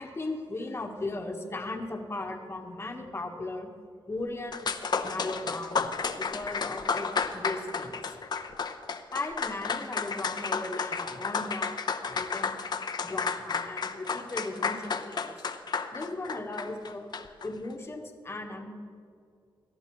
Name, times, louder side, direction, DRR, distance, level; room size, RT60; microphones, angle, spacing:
voice 1, 0.0-3.7 4.1-4.7 5.0-8.1 9.1-12.6 13.0-15.3 15.9-17.1 17.4-18.7, left 2 dB, 30° left, 3 dB, 1.2 m, -37 dB
sound 1, 4.2-4.3 4.5-17.5, left 5 dB, 50° left, 0.7 m, -32 dB
18.0 x 12.5 x 3.1 m, 2.3 s
cardioid pair, 90°, 9 cm